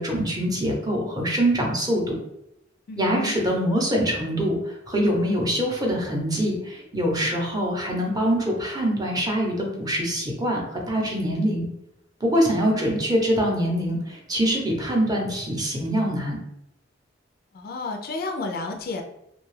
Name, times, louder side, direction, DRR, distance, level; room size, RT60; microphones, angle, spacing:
voice 1, 0.0-2.2 3.0-11.7 12.2-16.4, equal, 20° right, 0 dB, 0.6 m, -24 dB
voice 2, 2.9-3.3 17.5-19.0, left 3 dB, 50° left, 4 dB, 0.3 m, -31 dB
2.7 x 2.2 x 3.1 m, 0.82 s
head